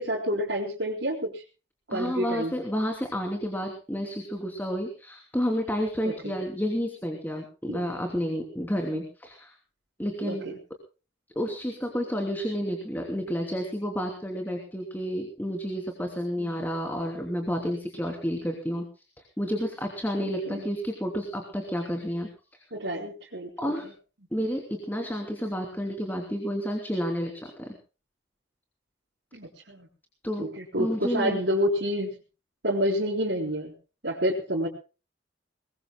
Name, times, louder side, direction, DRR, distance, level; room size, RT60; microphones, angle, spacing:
voice 1, 0.0-1.4 1.9-2.5 6.0-6.3 7.7-7.8 10.2-10.4 16.4-16.6 20.5-20.7 22.7-23.5 29.3-29.9 30.4-32.2 32.6-33.7 34.0-34.7, equal, 70° right, -6 dB, 4.0 m, -28 dB
voice 2, 1.9-9.5 10.0-10.5 11.3-18.9 19.4-22.6 23.6-23.9 24.3-27.7 30.2-30.5 30.8-31.4, equal, 10° left, 2 dB, 3.0 m, -30 dB
23.5 x 20.5 x 2.2 m, 0.35 s
head